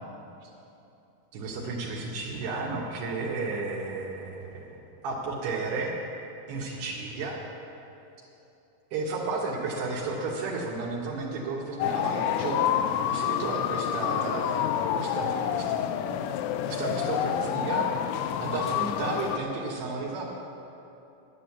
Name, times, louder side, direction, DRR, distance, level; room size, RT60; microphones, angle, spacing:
voice 1, 1.3-5.9 6.5-7.4 8.9-16.0 16.7-20.2, right 3 dB, 70° right, -3 dB, 3.0 m, -33 dB
sound 1, 11.8-19.4, left 10 dB, 90° left, 3.1 m, -28 dB
11.5 x 10.0 x 7.2 m, 2.9 s
omnidirectional pair, 5.5 m